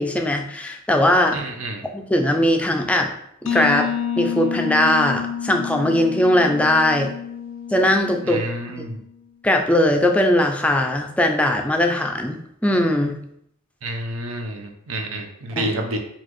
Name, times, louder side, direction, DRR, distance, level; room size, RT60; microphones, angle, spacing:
voice 1, 0.0-1.4 1.9-3.1 3.4-3.9 4.2-7.1 7.7-8.4 9.4-13.2 15.6-15.7, left 1 dB, 5° left, 3 dB, 0.3 m, -19 dB
voice 2, 1.3-1.9 8.2-9.0 13.8-16.0, right 1 dB, 80° right, 4 dB, 0.6 m, -29 dB
sound 1, 3.5-9.0, left 8 dB, 80° left, 0.4 m, -29 dB
4.0 x 2.3 x 3.0 m, 0.72 s
head